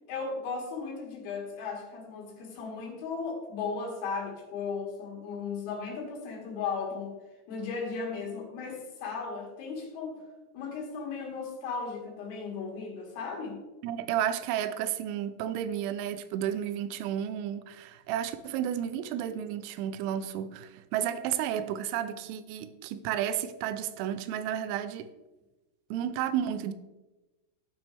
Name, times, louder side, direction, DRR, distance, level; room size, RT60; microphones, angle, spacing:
voice 1, 0.1-7.1 7.5-10.2 10.5-13.6, left 5 dB, 55° left, 3.9 m, -36 dB
voice 2, 13.8-25.1 25.9-26.7, right 10 dB, 85° right, 3.3 m, -32 dB
16.0 x 6.0 x 3.5 m
omnidirectional pair, 5.9 m